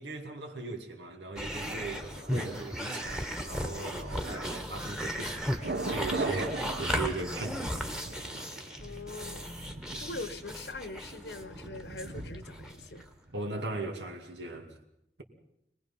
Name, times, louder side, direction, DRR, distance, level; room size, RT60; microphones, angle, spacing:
voice 1, 0.0-7.7 9.9-10.0 13.3-14.8, right 3 dB, 85° right, 2.5 m, -39 dB
sound 1, 1.4-13.1, equal, 5° right, 1.4 m, -36 dB
Thunder, 1.5-13.4 13.7-13.8, right 2 dB, 70° right, 1.3 m, -41 dB
voice 2, 8.8-9.6 10.0-13.0, left 2 dB, 75° left, 1.2 m, -42 dB
25.5 x 19.5 x 5.7 m
head